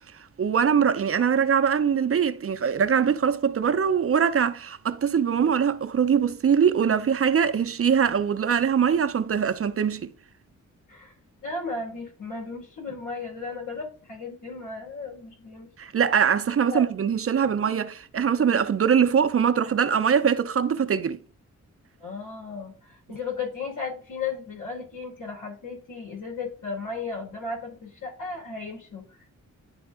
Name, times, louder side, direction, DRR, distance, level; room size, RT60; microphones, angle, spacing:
voice 1, 0.4-10.1 15.8-21.2, right 7 dB, 45° right, 0.6 m, -22 dB
voice 2, 11.4-15.7 16.7-16.9 17.4-17.5 22.0-29.4, left 4 dB, 85° left, 3.7 m, -35 dB
10.5 x 3.5 x 3.6 m
wide cardioid pair, 115°, 31 cm